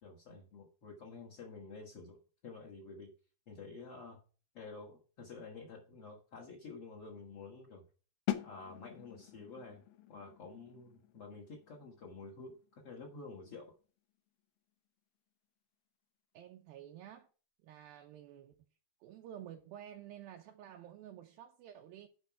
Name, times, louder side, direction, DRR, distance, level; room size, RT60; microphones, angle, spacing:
voice 1, 0.0-2.2 2.4-3.1 3.5-4.2 4.5-7.9 8.4-9.8 10.1-13.7, left 4 dB, 45° left, 2.1 m, -50 dB
sound 1, 8.3-14.0, left 14 dB, 75° left, 2.2 m, -44 dB
voice 2, 16.3-17.3 17.6-18.5 19.0-22.1, right 11 dB, 80° right, 2.3 m, -51 dB
10.5 x 5.1 x 4.7 m
omnidirectional pair, 4.6 m